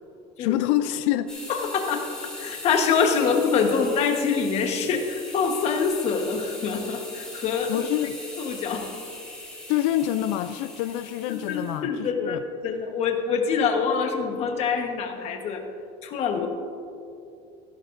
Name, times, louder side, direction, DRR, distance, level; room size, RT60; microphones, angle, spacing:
voice 1, 0.4-1.3 7.7-8.2 9.7-12.4, left 13 dB, 90° left, 11 dB, 0.4 m, -26 dB
sound 1, 1.3-11.8, left 2 dB, 5° left, 2.7 m, -40 dB
voice 2, 1.5-2.0 2.4-7.8 8.4-8.9 11.3-15.6 16.0-16.5, left 5 dB, 40° left, 4 dB, 1.2 m, -25 dB
15.0 x 12.0 x 2.6 m, 2.6 s
cardioid pair, 165°, 16 cm